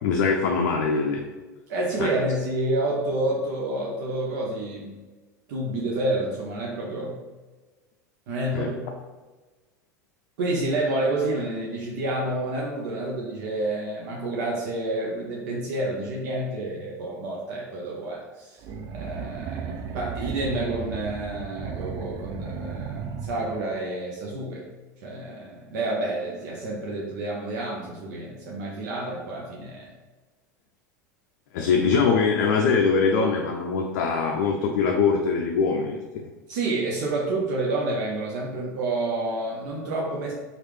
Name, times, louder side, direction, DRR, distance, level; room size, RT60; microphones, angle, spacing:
voice 1, 0.0-1.2 2.0-2.1 8.5-8.7 31.5-36.0, left 5 dB, 65° left, 1 dB, 0.4 m, -22 dB
voice 2, 1.7-4.9 5.5-7.2 8.3-8.8 10.4-18.6 18.9-24.6 25.0-29.9 36.5-40.3, right 2 dB, 65° right, -3 dB, 0.7 m, -29 dB
sound 1, 18.6-23.8, right 6 dB, 40° right, 0.3 m, -35 dB
3.2 x 2.4 x 3.1 m, 1.2 s
hypercardioid pair, 95°, 10 cm